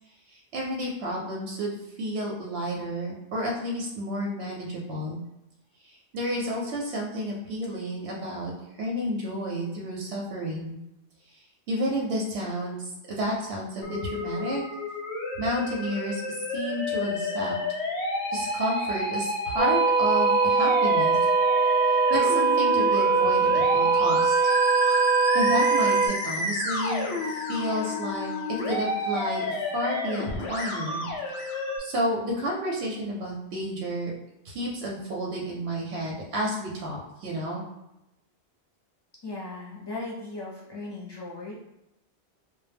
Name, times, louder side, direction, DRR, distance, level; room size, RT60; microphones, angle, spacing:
voice 1, 0.3-1.7 2.0-5.2 5.8-10.7 11.7-14.6 15.4-17.5 18.3-21.2 22.1-24.4 25.3-28.3 28.7-31.1 31.8-34.1 34.4-37.6, equal, 90° right, -2 dB, 0.8 m, -31 dB
Musical instrument, 13.8-31.8, left 2 dB, 85° left, 0.9 m, -31 dB
sound 1, 19.6-26.1, right 5 dB, 60° right, 0.6 m, -22 dB
voice 2, 39.2-41.6, left 2 dB, 35° left, -5 dB, 0.4 m, -37 dB
2.1 x 2.0 x 3.3 m, 0.89 s
omnidirectional pair, 1.1 m